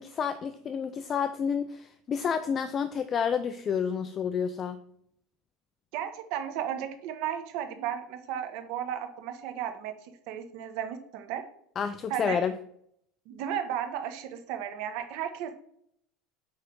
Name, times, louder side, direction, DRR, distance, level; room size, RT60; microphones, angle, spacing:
voice 1, 0.0-4.8 11.8-12.5, left 7 dB, 30° left, 10 dB, 0.4 m, -30 dB
voice 2, 5.9-11.4 12.1-12.4 13.3-15.5, right 9 dB, 65° right, 7 dB, 1.1 m, -34 dB
8.3 x 3.4 x 5.2 m, 0.69 s
supercardioid pair, 145°, 0 cm